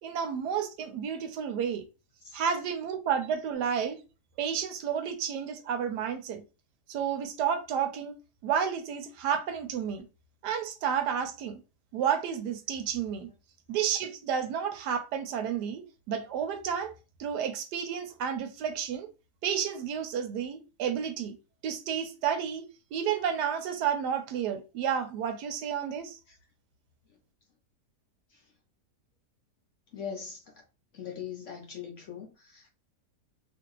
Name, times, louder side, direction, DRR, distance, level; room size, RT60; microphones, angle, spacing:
voice 1, 0.0-1.8 2.3-4.0 4.4-6.4 6.9-8.2 8.4-10.1 10.4-11.6 11.9-13.3 13.7-16.9 17.2-19.1 19.4-21.3 21.6-22.7 22.9-26.2, right 8 dB, 85° right, 1.2 m, -31 dB
voice 2, 29.9-30.6 30.9-32.7, left 7 dB, 60° left, 0.8 m, -41 dB
2.9 x 2.5 x 2.9 m
omnidirectional pair, 1.8 m